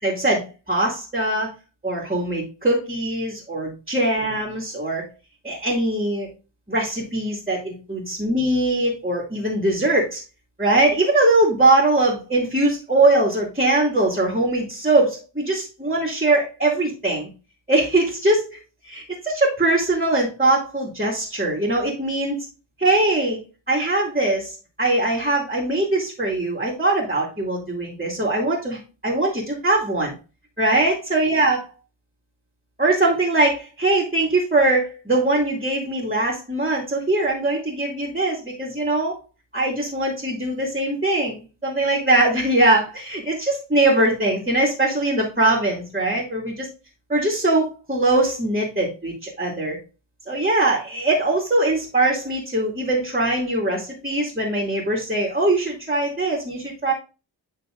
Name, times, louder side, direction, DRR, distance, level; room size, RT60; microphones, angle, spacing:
voice 1, 0.0-1.5 1.8-5.0 5.4-6.3 6.7-10.2 10.6-17.3 17.7-18.6 18.8-22.4 22.8-23.4 23.7-30.1 30.6-31.6 32.8-39.2 39.5-46.7 47.1-49.8 50.3-56.9, right 2 dB, 20° right, -1 dB, 2.3 m, -21 dB
9.7 x 3.4 x 3.7 m, 0.32 s
wide cardioid pair, 60°, 45 cm